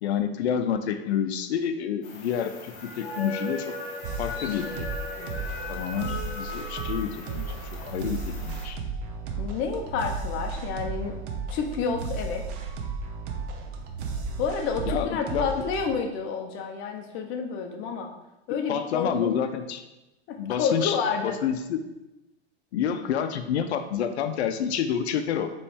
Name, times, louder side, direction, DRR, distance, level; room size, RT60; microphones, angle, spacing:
voice 1, 0.0-3.7 4.2-4.9 5.2-7.5 7.8-8.8 14.8-15.6 18.7-19.8 20.4-21.8 22.7-25.5, left 8 dB, 85° left, 9 dB, 0.5 m, -29 dB
sound 1, 2.0-8.6, left 2 dB, 65° left, 1.2 m, -37 dB
sound 2, 4.0-15.9, right 4 dB, 55° right, 0.7 m, -34 dB
voice 2, 9.4-11.2 11.5-12.4 14.4-18.1 18.5-19.4 20.3-21.4, left 5 dB, 40° left, 4 dB, 0.7 m, -29 dB
4.2 x 3.1 x 3.4 m, 0.97 s
hypercardioid pair, 120°, 32 cm